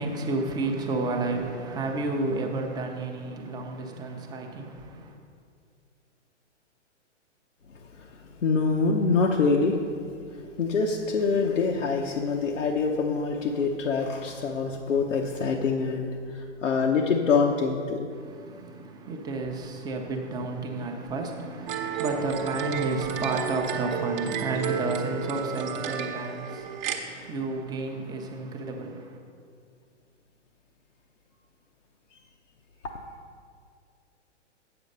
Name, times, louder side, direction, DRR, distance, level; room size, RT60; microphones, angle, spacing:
voice 1, 0.0-5.2 18.1-29.2, right 2 dB, 10° right, 2 dB, 0.6 m, -31 dB
voice 2, 8.4-9.8 10.3-18.1, left 4 dB, 85° left, 0 dB, 0.9 m, -25 dB
sound 1, 21.7-27.0, right 7 dB, 40° right, 1.0 m, -32 dB
7.9 x 7.4 x 5.3 m, 2.2 s
hypercardioid pair, 125°, 36 cm